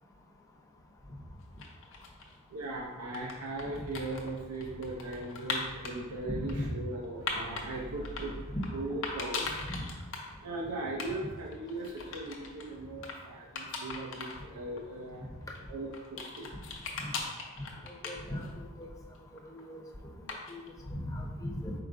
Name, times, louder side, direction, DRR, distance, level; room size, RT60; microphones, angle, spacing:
sound 1, 1.4-2.4 2.9-5.9 6.5-7.7 8.0-8.7 9.0-10.3 10.6-10.7 10.9-11.1 11.4-12.7 13.0-13.2 13.5-14.4 14.8-14.9 15.5-18.7 19.0-19.6 20.3-20.7, left 4 dB, 60° left, 0.7 m, -39 dB
voice 1, 2.5-9.7 10.4-15.3 15.7-16.5, right 2 dB, 90° right, -2 dB, 0.6 m, -38 dB
voice 2, 6.3-6.7 8.5-8.6 9.7-9.8 18.0-18.9 19.5-19.8 20.5-21.7, left 1 dB, 15° left, -2 dB, 0.6 m, -37 dB
4.7 x 4.3 x 2.5 m, 1.3 s
head